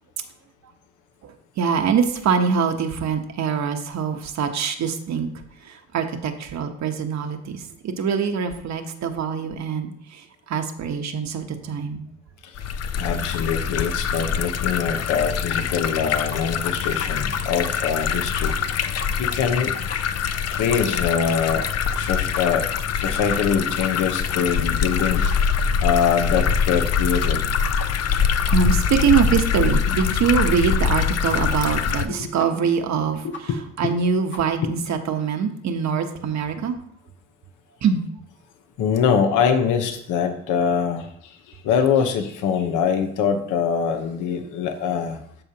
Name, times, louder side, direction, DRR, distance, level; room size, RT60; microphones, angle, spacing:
voice 1, 1.2-5.3 5.6-12.0 25.2-25.3 28.5-36.8 37.8-38.0, right 6 dB, 65° right, 5 dB, 1.1 m, -24 dB
sound 1, 12.6-32.1, left 7 dB, 55° left, 0.6 m, -24 dB
voice 2, 13.0-18.6 19.2-19.7 20.5-21.7 21.9-22.7 22.9-25.2 25.8-27.5 32.2-32.3 33.2-33.9 38.8-45.2, left 7 dB, 85° left, 6 dB, 1.0 m, -23 dB
sound 2, 15.5-16.4 16.6-16.7 17.0-17.7 18.0-18.1 18.3-18.7 19.0-19.1 19.4-19.5 19.9-20.0 20.3-20.4 20.7-21.0 21.5-21.6 21.9-22.0 22.3-22.4 22.8-22.9 23.3-23.4 23.8-23.9 24.3-24.4 24.7-24.8 25.3-25.4 25.8-25.9 26.3-26.4 26.8-26.9 27.2-27.5 27.7-27.8 28.1-28.2 28.5-28.8 29.1-29.2 29.6-29.7 30.0-30.1 30.3-30.4 30.8-30.9 31.3-31.4 31.8-31.9 32.4-32.5 32.8-32.9 33.3-33.4 33.8-33.9 34.3-34.4, left 4 dB, 40° left, 1.3 m, -36 dB
13.5 x 5.0 x 2.9 m, 0.68 s
cardioid pair, 90°, 30 cm